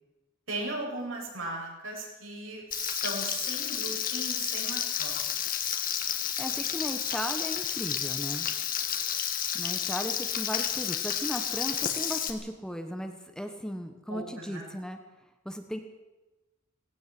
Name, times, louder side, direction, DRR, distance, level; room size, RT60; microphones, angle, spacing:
voice 1, 0.5-5.2 14.1-14.7, right 2 dB, 75° right, -1 dB, 8.0 m, -37 dB
Frying (food), 2.7-12.3, left 9 dB, 40° left, 2.0 m, -31 dB
voice 2, 6.4-8.5 9.5-15.0 15.4-15.8, equal, 5° left, 5 dB, 1.4 m, -36 dB
18.5 x 17.5 x 7.9 m, 1.1 s
head